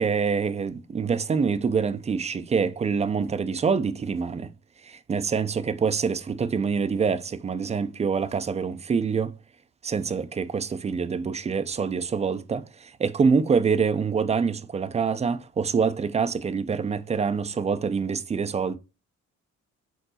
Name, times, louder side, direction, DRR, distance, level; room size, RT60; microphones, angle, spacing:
voice 1, 0.0-4.5 4.9-9.3 9.8-18.8, right 5 dB, 25° right, 0.3 m, -25 dB
4.5 x 3.9 x 2.7 m
cardioid pair, 90°, 30 cm